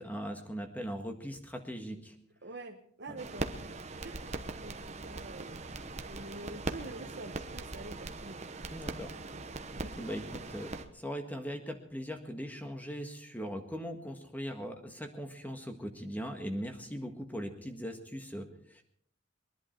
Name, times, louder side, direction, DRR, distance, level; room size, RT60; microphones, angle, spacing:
voice 1, 0.0-2.1 3.1-3.2 8.7-9.1 10.0-18.8, equal, 10° left, 5 dB, 1.6 m, -40 dB
voice 2, 2.4-5.6 6.1-8.7 9.1-9.5 9.7-9.9, right 2 dB, 55° right, 2 dB, 1.2 m, -47 dB
sound 1, 3.2-10.9, right 2 dB, 35° right, 1.0 m, -41 dB
23.0 x 11.0 x 4.6 m, 0.65 s
head